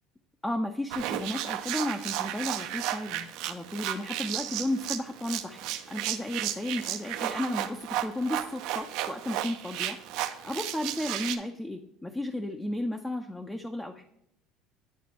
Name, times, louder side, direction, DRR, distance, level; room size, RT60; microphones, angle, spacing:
voice 1, 0.4-14.0, left 1 dB, 10° left, 4 dB, 0.5 m, -34 dB
sound 1, 0.9-11.4, right 12 dB, 70° right, 0.6 m, -34 dB
10.0 x 4.1 x 2.9 m, 0.79 s
cardioid pair, 140°, 0 cm